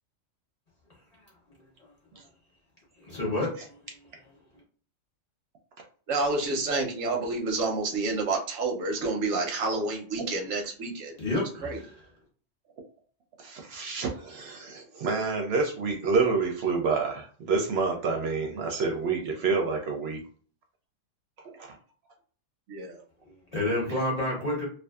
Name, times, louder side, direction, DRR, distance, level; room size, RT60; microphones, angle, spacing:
voice 1, 3.0-3.8 11.2-12.0 23.3-24.7, left 1 dB, 40° left, -4 dB, 0.7 m, -30 dB
voice 2, 6.1-11.2 11.6-11.8 22.7-23.0, right 3 dB, 90° right, 2 dB, 1.0 m, -29 dB
voice 3, 13.4-20.2 21.4-21.8 23.9-24.0, right 4 dB, 65° right, 2 dB, 0.7 m, -28 dB
2.5 x 2.3 x 2.3 m, 0.43 s
omnidirectional pair, 1.3 m